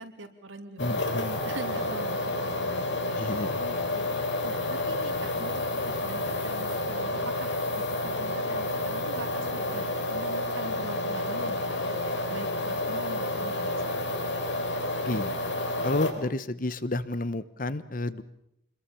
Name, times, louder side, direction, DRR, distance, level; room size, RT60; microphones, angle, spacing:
voice 1, 0.0-13.9, right 2 dB, 85° right, 6 dB, 2.9 m, -43 dB
sound 1, 0.8-16.1, left 2 dB, 65° left, 3.8 m, -30 dB
voice 2, 0.8-1.5 3.2-3.6 15.0-15.4 15.8-18.2, left 2 dB, 45° left, 15 dB, 1.0 m, -31 dB
26.5 x 21.5 x 7.0 m, 0.77 s
head